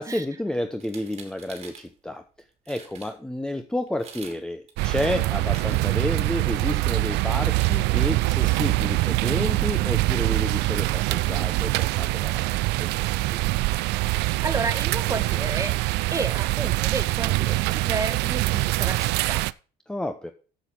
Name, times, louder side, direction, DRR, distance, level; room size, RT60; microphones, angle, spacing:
voice 1, 0.0-2.2 2.7-13.4 19.9-20.3, left 1 dB, 5° left, 8 dB, 0.7 m, -31 dB
sound 1, 0.8-1.9 2.4-2.5 2.7-3.1 3.9-4.4 4.7-6.2 7.3-7.8, right 6 dB, 35° right, 2.2 m, -45 dB
sound 2, 4.8-19.5, right 20 dB, 75° right, 0.4 m, -24 dB
voice 2, 14.2-15.8 16.1-19.5, right 4 dB, 20° right, 8 dB, 1.5 m, -31 dB
8.1 x 7.2 x 6.0 m, 0.37 s
cardioid pair, 115°, 18 cm